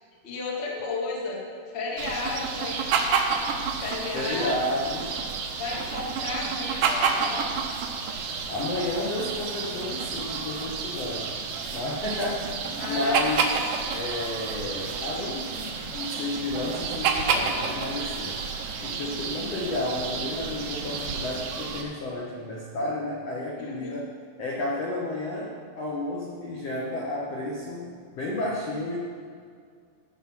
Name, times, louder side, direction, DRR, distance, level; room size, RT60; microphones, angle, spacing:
voice 1, 0.2-1.4 1.7-2.9 3.8-4.6 5.6-7.5 12.8-13.4 23.6-24.0, left 3 dB, 35° left, -4 dB, 1.0 m, -33 dB
sound 1, 2.0-21.8, right 5 dB, 70° right, 2.1 m, -30 dB
voice 2, 4.1-5.1 8.5-11.4 11.7-13.5 13.9-18.4 18.8-24.1 24.4-29.0, left 2 dB, 65° left, -4 dB, 1.6 m, -31 dB
16.0 x 6.1 x 5.8 m, 2.1 s
omnidirectional pair, 4.7 m